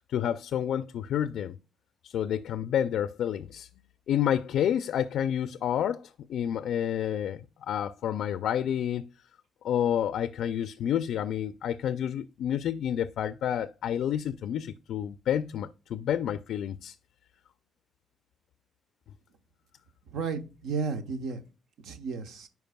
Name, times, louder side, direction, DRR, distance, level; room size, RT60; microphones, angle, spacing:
voice 1, 0.1-1.6 2.0-3.7 4.1-9.0 9.6-17.0, left 9 dB, 75° left, 0.3 m, -29 dB
voice 2, 20.1-21.4 21.8-22.5, right 5 dB, 80° right, 0.9 m, -33 dB
10.5 x 4.6 x 2.2 m
cardioid pair, 90°, 0 cm